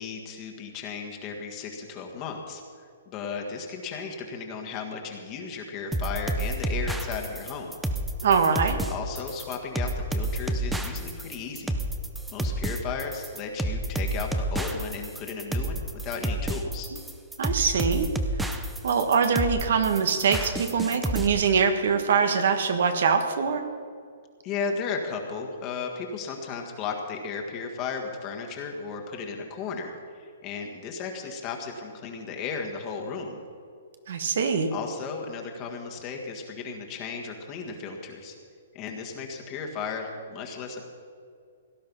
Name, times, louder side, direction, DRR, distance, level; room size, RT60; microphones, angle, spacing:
voice 1, 0.0-2.6 3.0-7.8 8.9-11.8 12.3-16.9 24.4-33.4 34.7-38.3 38.7-40.9, left 5 dB, 25° left, 2 dB, 1.7 m, -35 dB
sound 1, 5.9-21.3, right 1 dB, 5° right, 0.6 m, -29 dB
voice 2, 8.2-8.8 17.4-18.1 18.4-18.5 18.8-23.6 34.1-34.7, right 6 dB, 65° right, 7 dB, 1.5 m, -23 dB
17.5 x 11.0 x 5.5 m, 2.2 s
hypercardioid pair, 165°, 0 cm